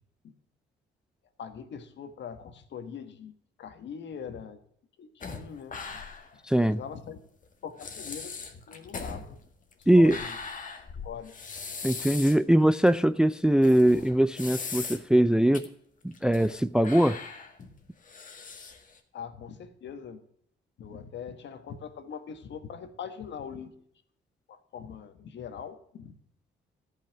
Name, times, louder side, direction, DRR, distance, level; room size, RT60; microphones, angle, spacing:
voice 1, 1.4-3.3 3.6-4.6 5.0-6.0 6.6-7.2 7.6-9.4 9.8-10.4 10.9-11.3 19.1-20.2 20.8-23.7 24.5-26.1, left 7 dB, 65° left, 1.5 m, -42 dB
sound 1, 5.2-6.4 6.7-6.8 7.4-7.5 7.8-12.4 12.9-13.0 13.6-15.2 15.5-15.6 16.1-16.6 16.8-19.0, left 5 dB, 40° left, 1.9 m, -39 dB
voice 2, 6.5-6.8 9.9-10.2 11.8-15.7 16.0-17.2, right 1 dB, 5° right, 0.4 m, -21 dB
13.5 x 5.7 x 7.2 m
cardioid pair, 90°, 20 cm